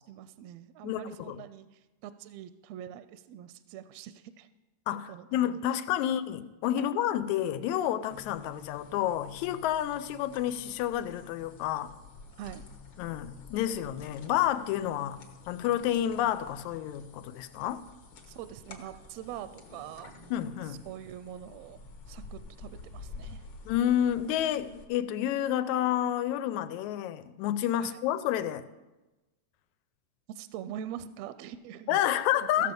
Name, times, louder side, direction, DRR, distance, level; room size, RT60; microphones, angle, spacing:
voice 1, 0.1-4.5 5.0-5.6 6.7-6.9 12.4-12.6 18.3-20.1 20.7-21.8 22.1-23.5 27.8-28.0 30.3-32.2 32.6-32.7, right 10 dB, 80° right, 1.6 m, -44 dB
voice 2, 0.8-1.4 4.9-11.9 13.0-15.2 15.5-17.8 20.3-20.8 23.7-28.7 31.9-32.7, left 11 dB, 90° left, 2.0 m, -29 dB
sound 1, 8.1-24.8, left 4 dB, 55° left, 1.4 m, -49 dB
15.0 x 6.7 x 5.3 m
omnidirectional pair, 3.3 m